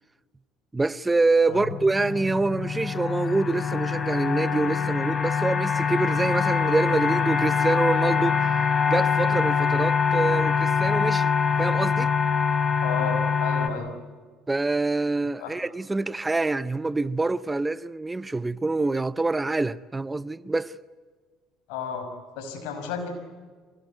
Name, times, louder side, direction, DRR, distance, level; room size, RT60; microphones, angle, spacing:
voice 1, 0.7-8.4 8.9-11.3 11.6-12.1 14.5-20.8, right 3 dB, 15° right, 0.7 m, -26 dB
sound 1, 1.7-13.7, left 6 dB, 35° left, 3.0 m, -24 dB
voice 2, 12.8-13.9 15.4-15.5 21.7-22.1 22.3-23.1, left 6 dB, 80° left, 5.5 m, -32 dB
25.5 x 18.5 x 9.4 m
supercardioid pair, 75°, 0 cm